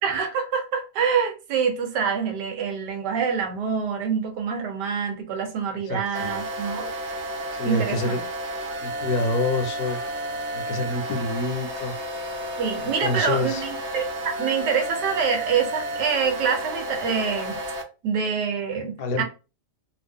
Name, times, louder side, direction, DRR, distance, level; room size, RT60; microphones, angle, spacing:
voice 1, 0.0-6.9 7.6-8.2 12.6-17.6 18.0-19.2, right 6 dB, 80° right, 1.4 m, -26 dB
voice 2, 5.9-6.4 7.6-8.2 8.8-10.0 10.5-11.9 12.8-13.7 19.0-19.2, left 2 dB, 70° left, 1.1 m, -27 dB
sound 1, 6.1-17.8, right 1 dB, 55° right, 0.8 m, -32 dB
2.8 x 2.5 x 3.4 m
omnidirectional pair, 1.8 m